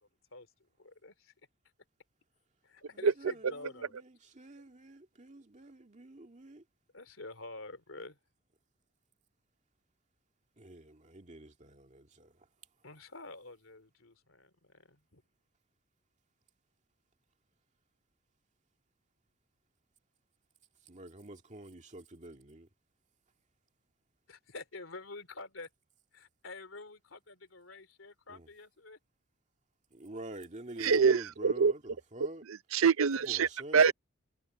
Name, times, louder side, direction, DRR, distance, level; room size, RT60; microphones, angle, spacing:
voice 1, 0.8-1.3 2.6-3.9 6.9-8.2 12.8-15.2 24.3-25.7 26.1-29.0, left 3 dB, 70° left, 3.2 m, -48 dB
voice 2, 4.4-6.6 10.6-12.3 20.9-22.7 29.9-31.8 32.1-32.4 33.3-33.9, right 1 dB, 35° right, 2.1 m, -46 dB
voice 3, 30.8-31.7 32.4-33.9, right 5 dB, 85° right, 0.6 m, -25 dB
head